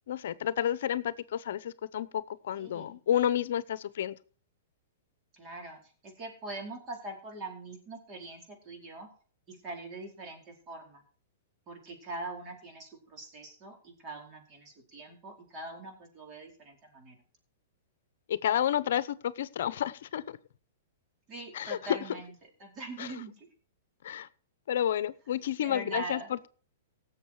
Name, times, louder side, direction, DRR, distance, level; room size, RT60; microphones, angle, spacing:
voice 1, 0.1-4.2 18.3-20.2 21.5-22.0 23.0-23.1 24.0-24.3 24.7-26.5, left 10 dB, 70° left, 17 dB, 0.7 m, -30 dB
voice 2, 2.6-3.0 5.3-9.1 9.5-11.0 11.7-17.2 21.3-22.3 22.6-23.5 25.6-26.3, right 2 dB, 30° right, 1 dB, 4.8 m, -43 dB
17.0 x 7.3 x 4.7 m, 0.43 s
hypercardioid pair, 135°, 0 cm